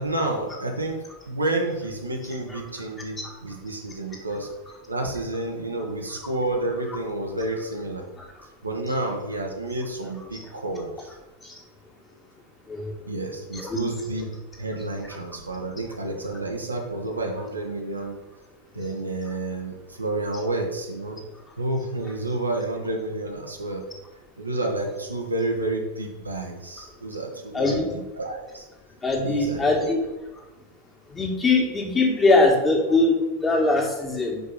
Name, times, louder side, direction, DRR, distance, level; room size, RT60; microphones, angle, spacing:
voice 1, 0.0-4.5 4.9-8.0 8.6-11.1 13.1-14.3 14.6-18.2 18.7-21.2 21.6-23.8 24.4-28.6 29.2-30.0, right 2 dB, 80° right, 1 dB, 1.3 m, -30 dB
voice 2, 27.5-27.9 29.0-30.0 31.1-34.4, left 2 dB, 15° left, -1 dB, 2.0 m, -22 dB
5.4 x 5.2 x 6.4 m, 1.0 s
figure-of-eight pair, 90°, 0 cm